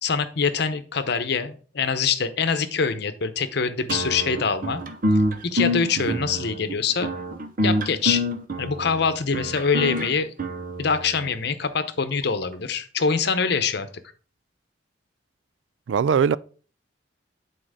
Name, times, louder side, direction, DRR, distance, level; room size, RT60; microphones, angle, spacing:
voice 1, 0.0-4.8 5.4-7.1 7.6-8.2 8.6-10.3 10.8-13.9, left 5 dB, 65° left, 0.8 m, -24 dB
sound 1, 3.9-11.3, equal, 50° right, 0.8 m, -26 dB
voice 2, 15.9-16.4, right 7 dB, 85° right, 0.4 m, -21 dB
8.8 x 4.3 x 4.9 m
head